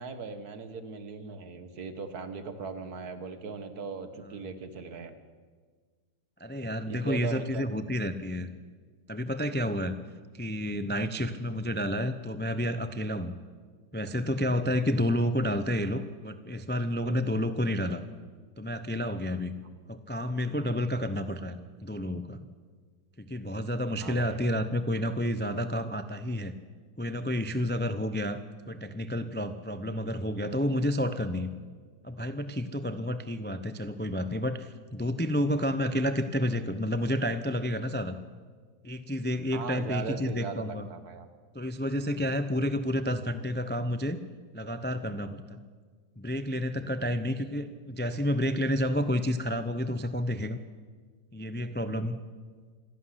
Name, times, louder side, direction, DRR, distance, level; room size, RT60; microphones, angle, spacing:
voice 1, 0.0-5.1 6.9-7.6 19.6-19.8 24.0-24.4 39.5-41.3, right 4 dB, 60° right, 9 dB, 1.9 m, -38 dB
voice 2, 4.2-4.5 6.4-8.5 9.1-10.0 10.3-13.3 13.9-18.0 18.6-19.5 19.9-22.4 23.2-26.5 27.0-28.4 28.7-31.5 32.0-38.2 38.8-40.9 41.5-44.2 44.5-45.6 46.2-50.6 51.3-52.2, equal, 15° left, 10 dB, 0.4 m, -30 dB
26.5 x 12.0 x 10.0 m, 1.5 s
omnidirectional pair, 1.9 m